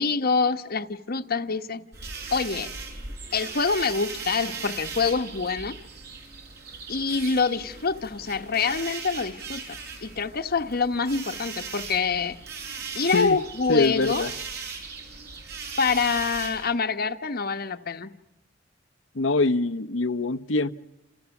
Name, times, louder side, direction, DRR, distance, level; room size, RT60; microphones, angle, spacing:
voice 1, 0.0-1.8 2.3-2.7 3.3-5.8 6.9-12.4 12.9-14.3 15.8-18.1, left 4 dB, 50° left, 1.2 m, -26 dB
sound 1, 1.9-16.7, right 5 dB, 60° right, 7.4 m, -38 dB
voice 2, 13.7-14.3 19.1-20.7, left 3 dB, 80° left, 1.0 m, -23 dB
28.5 x 28.5 x 7.2 m
head